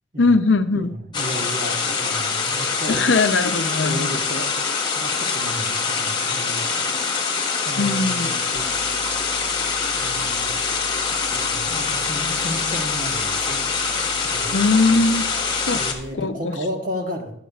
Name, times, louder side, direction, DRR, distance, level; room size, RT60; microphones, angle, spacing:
voice 1, 0.2-0.9 2.9-4.1 7.8-8.3 14.5-15.3 15.6-15.8 16.2-16.6, left 3 dB, 80° left, 9 dB, 0.7 m, -20 dB
voice 2, 0.7-3.2 3.8-4.5 4.9-6.6 7.6-8.7 9.9-10.5 11.3-14.6 15.7-17.3, equal, 45° right, 3 dB, 1.2 m, -33 dB
sound 1, 1.1-15.9, left 5 dB, 25° left, 1.2 m, -24 dB
sound 2, 8.5-16.1, left 1 dB, 20° right, 3.2 m, -42 dB
12.0 x 10.5 x 2.4 m, 0.72 s
head